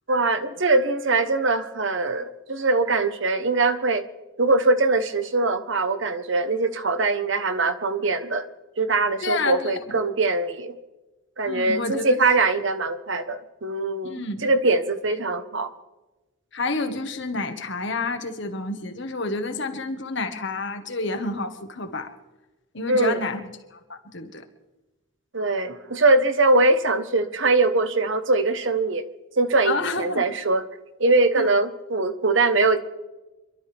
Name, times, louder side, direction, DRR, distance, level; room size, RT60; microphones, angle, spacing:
voice 1, 0.1-4.0 4.4-8.4 8.8-10.7 11.4-15.7 22.9-23.2 25.3-29.1 29.4-30.6 31.0-32.8, right 3 dB, 60° right, 10 dB, 1.1 m, -22 dB
voice 2, 9.2-10.0 11.5-12.2 14.0-14.5 16.5-22.1 22.7-23.4 23.7-24.4 29.6-30.3 31.4-31.5, left 3 dB, 55° left, 7 dB, 1.5 m, -29 dB
26.5 x 12.5 x 3.5 m, 1.1 s
head